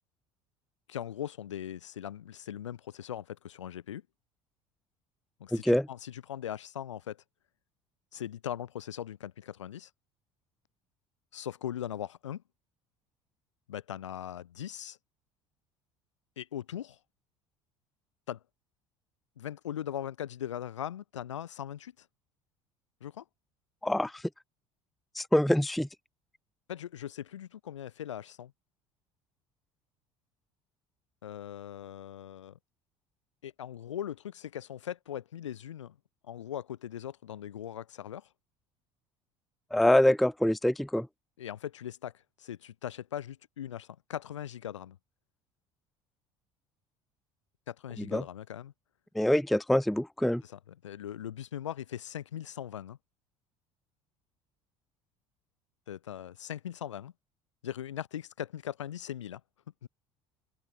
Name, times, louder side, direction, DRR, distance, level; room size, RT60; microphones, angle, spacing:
voice 1, 0.9-4.0 5.4-7.2 8.1-9.9 11.3-12.4 13.7-15.0 16.4-17.0 18.3-18.4 19.4-22.1 23.0-23.2 26.7-28.5 31.2-32.6 33.4-36.0 36.2-38.3 41.4-42.1 42.4-45.0 47.7-48.7 50.4-53.0 55.9-57.1 57.6-59.4 59.8-59.9, left 10 dB, 75° left, 2.4 m, -40 dB
voice 2, 5.5-5.9 23.8-24.1 25.2-25.9 39.7-41.1 48.1-48.2 49.2-50.4, left 1 dB, ahead, 0.5 m, -25 dB
open air
figure-of-eight pair, 65°, 16 cm